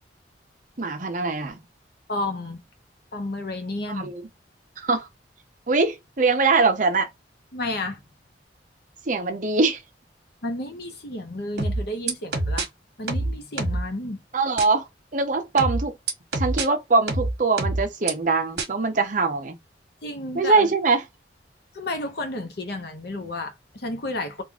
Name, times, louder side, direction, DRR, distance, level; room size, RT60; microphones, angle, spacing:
voice 1, 0.8-1.6 3.9-4.3 4.8-5.1 5.7-7.1 9.1-9.8 14.3-14.9 15.1-15.9 16.3-19.6 20.3-21.0, right 3 dB, 45° right, 0.8 m, -22 dB
voice 2, 2.1-2.6 3.1-4.1 7.5-8.0 10.4-12.7 13.0-14.2 20.0-20.7 21.7-24.4, left 2 dB, 60° left, 0.9 m, -31 dB
sound 1, 11.6-12.6 13.1-13.9 14.6-14.7 15.6-16.6 17.1-18.1 18.6-18.7, right 2 dB, 65° right, 1.2 m, -25 dB
3.6 x 2.5 x 2.9 m
head